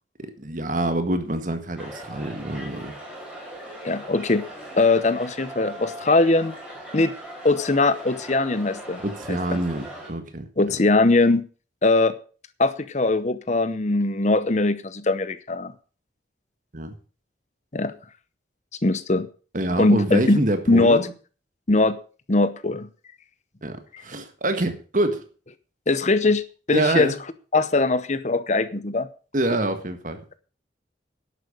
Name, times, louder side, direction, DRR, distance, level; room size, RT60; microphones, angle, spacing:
voice 1, 0.4-2.9 9.0-10.4 16.7-16.9 19.5-21.0 23.6-23.8 24.0-25.2 26.7-27.1 29.3-30.4, right 1 dB, 45° right, 1.7 m, -26 dB
sound 1, 1.8-10.1, right 1 dB, 5° right, 4.7 m, -39 dB
voice 2, 3.8-4.4 4.8-6.5 6.9-7.1 7.4-9.0 9.3-9.6 10.6-11.4 11.8-12.1 12.6-15.7 17.7-17.9 18.8-19.3 19.8-20.4 20.7-21.1 21.7-22.0 22.3-22.9 25.9-26.4 26.7-27.1 27.5-29.1, left 2 dB, 40° left, 0.8 m, -21 dB
11.0 x 8.6 x 6.5 m
head